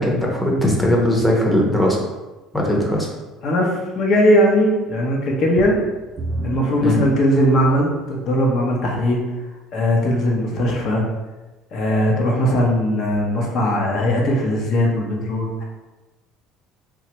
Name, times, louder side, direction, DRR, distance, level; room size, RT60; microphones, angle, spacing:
voice 1, 0.0-2.0 2.5-3.1 6.8-7.0, left 1 dB, 10° left, -2 dB, 0.7 m, -19 dB
voice 2, 3.4-5.8 6.4-9.2 9.7-11.0 11.7-15.6, equal, 55° left, -1 dB, 0.8 m, -19 dB
sound 1, 5.6-8.0 8.7-8.8 9.4-9.5, right 2 dB, 40° right, 0.3 m, -31 dB
3.1 x 2.3 x 3.0 m, 1.1 s
cardioid pair, 115°, 0 cm